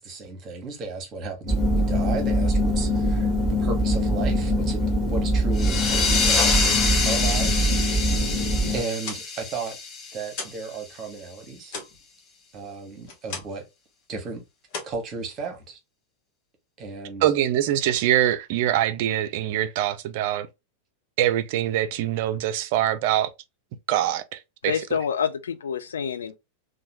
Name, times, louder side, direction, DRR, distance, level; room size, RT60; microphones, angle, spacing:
voice 1, 0.0-3.3 3.6-8.3 8.7-9.8 10.1-11.8 12.5-13.6 14.1-14.4 14.8-15.8 16.8-17.2, right 4 dB, 30° right, 1.0 m, -34 dB
sound 1, 1.5-8.8, equal, 10° left, 1.3 m, -23 dB
sound 2, 5.5-10.9, left 4 dB, 25° left, 0.6 m, -26 dB
sound 3, 9.0-10.7 11.0-13.7 14.0-14.3 14.7-15.8, left 4 dB, 45° left, 1.0 m, -39 dB
voice 2, 17.2-20.5 21.2-23.3 23.9-24.8, right 12 dB, 50° right, 0.3 m, -24 dB
voice 3, 24.6-26.4, left 7 dB, 65° left, 0.4 m, -27 dB
3.0 x 2.2 x 2.8 m
figure-of-eight pair, 90°, 0 cm